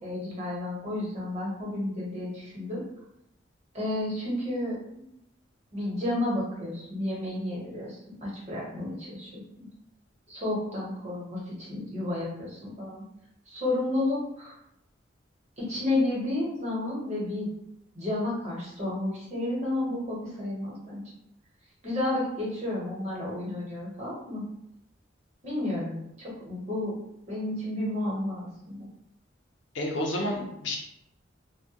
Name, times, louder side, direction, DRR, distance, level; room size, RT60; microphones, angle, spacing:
voice 1, 0.0-2.8 3.7-5.0 5.7-9.3 10.3-13.0 13.5-14.5 15.6-17.5 17.9-21.0 21.8-24.4 25.4-26.9 27.3-28.9, left 1 dB, 35° right, -6 dB, 0.9 m, -31 dB
voice 2, 29.7-30.8, left 1 dB, 80° left, 0 dB, 0.6 m, -30 dB
2.2 x 2.1 x 2.8 m, 0.82 s
head